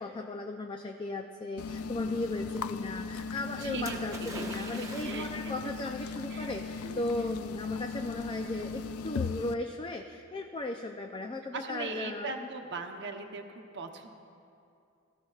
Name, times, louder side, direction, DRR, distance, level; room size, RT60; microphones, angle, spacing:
voice 1, 0.0-12.5, left 2 dB, 25° left, 4 dB, 0.4 m, -36 dB
sound 1, 1.6-9.5, left 4 dB, 85° left, 0.4 m, -37 dB
voice 2, 3.5-5.7 6.3-6.5 6.8-7.0 11.5-13.4 13.7-14.1, right 3 dB, 55° right, 4 dB, 0.9 m, -39 dB
Splash splatter, 3.9-5.7 6.6-6.7, right 2 dB, 15° right, 1.1 m, -44 dB
18.0 x 14.5 x 2.4 m, 2.5 s
head